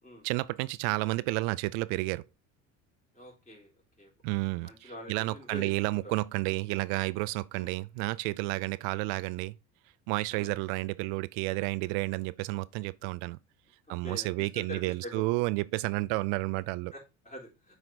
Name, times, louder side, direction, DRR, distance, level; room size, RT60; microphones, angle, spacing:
voice 1, 0.2-2.2 4.2-9.6 10.1-13.4 13.9-16.9, right 21 dB, 85° right, 0.5 m, -31 dB
voice 2, 3.1-3.7 4.0-4.1 4.6-5.7 6.0-6.1 7.5-7.7 10.3-10.5 14.0-15.2 16.9-17.8, equal, 20° left, 3.8 m, -44 dB
7.8 x 4.7 x 3.9 m
supercardioid pair, 105°, 35 cm